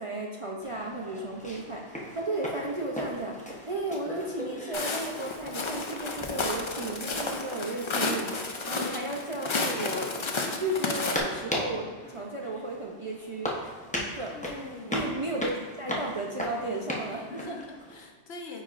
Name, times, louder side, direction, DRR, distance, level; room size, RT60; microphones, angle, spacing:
voice 1, 0.0-8.3 8.7-10.0 10.6-13.8 14.2-14.3 14.9-17.5, right 2 dB, 40° right, -1 dB, 0.5 m, -34 dB
sound 1, 0.6-18.1, left 1 dB, 10° left, 0.8 m, -38 dB
Walk footsteps, 4.7-11.2, left 3 dB, 40° left, 0.4 m, -32 dB
voice 2, 14.3-15.1 17.2-18.6, left 2 dB, 70° left, 2 dB, 1.1 m, -43 dB
9.4 x 4.3 x 2.5 m, 1.4 s
omnidirectional pair, 1.2 m